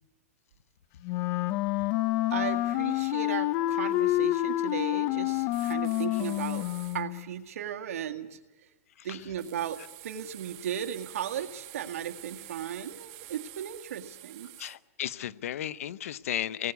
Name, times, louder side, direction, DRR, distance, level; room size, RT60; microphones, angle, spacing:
Wind instrument woodwind instrument, 1.0-7.2, left 15 dB, 35° left, 0.8 m, -28 dB
voice 1, 2.3-6.6 6.9-8.4 9.0-14.5, right 9 dB, 70° right, 5 dB, 1.9 m, -36 dB
sound 1, 5.5-7.0 9.4-14.8, right 17 dB, 40° right, 1.6 m, -48 dB
voice 2, 14.6-16.7, left 11 dB, 70° left, 16 dB, 0.9 m, -34 dB
28.0 x 20.0 x 8.3 m, 1.2 s
hypercardioid pair, 150°, 8 cm